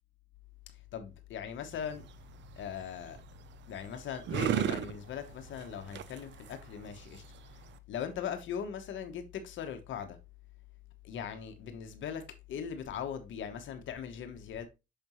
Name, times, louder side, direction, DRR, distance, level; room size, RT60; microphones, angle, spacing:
voice 1, 0.9-2.1 2.6-3.2 3.7-7.2 7.9-10.2 11.0-14.7, left 8 dB, 75° left, 1.0 m, -40 dB
sound 1, 1.7-7.8, right 10 dB, 65° right, 0.6 m, -38 dB
6.5 x 5.2 x 3.0 m
cardioid pair, 90°, 20 cm